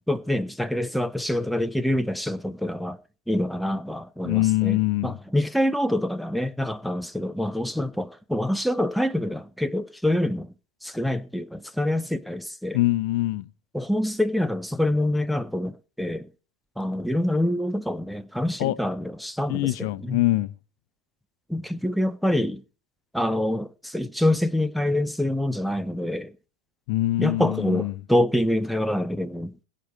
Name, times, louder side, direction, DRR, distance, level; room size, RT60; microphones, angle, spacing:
voice 1, 0.1-3.0 3.3-10.5 10.8-12.8 13.7-16.3 16.8-20.2 21.5-22.6 23.1-26.3 27.2-29.5, left 1 dB, ahead, 0.6 m, -26 dB
voice 2, 4.2-5.2 12.7-13.5 18.6-18.7 19.5-20.5 26.9-28.0, left 17 dB, 50° left, 0.7 m, -24 dB
22.0 x 7.6 x 4.3 m
figure-of-eight pair, 90°, 0 cm